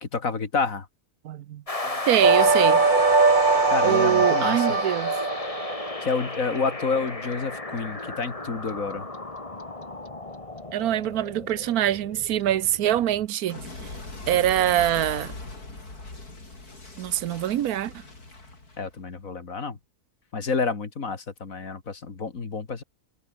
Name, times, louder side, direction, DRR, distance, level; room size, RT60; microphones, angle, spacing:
voice 1, 0.0-0.9 3.7-4.7 6.0-9.1 18.8-19.8 20.3-22.8, left 4 dB, 60° left, 2.7 m, -29 dB
voice 2, 1.2-2.8 3.8-5.1 10.7-13.6 14.3-15.3 17.0-17.9, right 12 dB, 80° right, 1.2 m, -24 dB
sound 1, 1.7-13.3, left 2 dB, 20° left, 2.3 m, -34 dB
sound 2, 2.2-5.9, right 3 dB, 30° right, 1.9 m, -21 dB
Clock, 4.0-6.8 7.1-10.1 10.3-19.2, left 2 dB, 85° left, 5.9 m, -41 dB
omnidirectional pair, 1.6 m